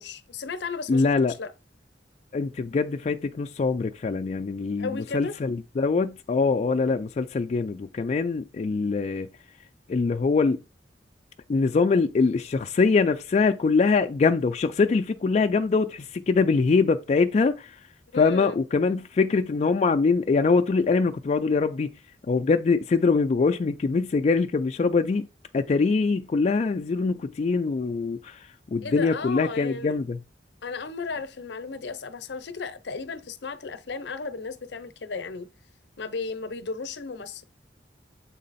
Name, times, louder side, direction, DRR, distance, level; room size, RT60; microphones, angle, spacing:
voice 1, 0.0-1.5 4.8-5.3 18.1-18.6 28.8-29.9 30.6-35.5 36.0-37.4, left 4 dB, 70° left, 0.6 m, -34 dB
voice 2, 0.9-1.3 2.3-9.3 9.9-10.6 11.5-17.8 18.2-21.9 22.3-25.3 25.5-30.2, left 4 dB, 40° left, 0.3 m, -23 dB
7.5 x 3.7 x 4.1 m
head